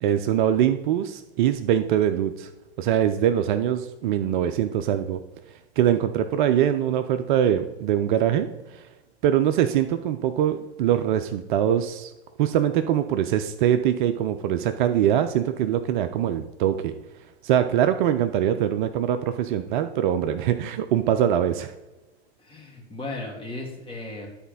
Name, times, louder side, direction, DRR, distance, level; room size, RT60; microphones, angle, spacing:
voice 1, 0.0-2.5 2.8-5.2 5.5-8.9 9.2-12.1 12.4-16.9 17.4-21.7, right 10 dB, 50° right, 8 dB, 0.6 m, -23 dB
voice 2, 22.4-24.3, left 2 dB, 15° left, -1 dB, 2.5 m, -36 dB
10.0 x 4.3 x 5.4 m, 1.1 s
hypercardioid pair, 100°, 32 cm